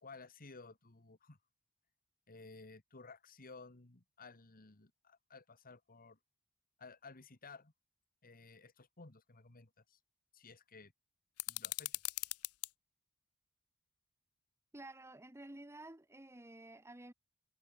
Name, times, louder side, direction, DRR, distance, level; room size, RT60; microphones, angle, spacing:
voice 1, 0.0-1.4 2.3-6.2 6.8-7.7 8.2-10.0 10.3-10.9 11.5-12.0, left 4 dB, 40° left, 1.8 m, -56 dB
sound 1, 11.4-12.7, left 19 dB, 75° left, 0.7 m, -40 dB
voice 2, 14.7-17.1, right 1 dB, 10° right, 1.1 m, -52 dB
head